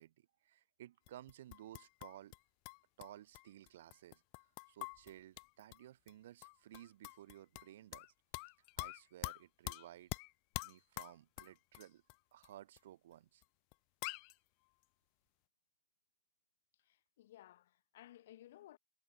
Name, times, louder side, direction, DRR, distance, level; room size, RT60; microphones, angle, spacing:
voice 1, 0.0-2.3 3.0-8.1 8.8-10.1 10.6-12.0 12.3-13.4, right 13 dB, 75° right, 2.3 m, -56 dB
sound 1, 1.1-2.4 2.6-5.8 6.1-6.2 6.4-8.1 8.3-12.1 12.4-12.5 12.8-12.9 13.4-13.5 13.7-13.8 14.0-14.3, left 40 dB or more, 35° left, 1.3 m, -46 dB
voice 2, 16.8-18.8, left 13 dB, 65° left, 5.7 m, -58 dB
supercardioid pair, 175°, 0 cm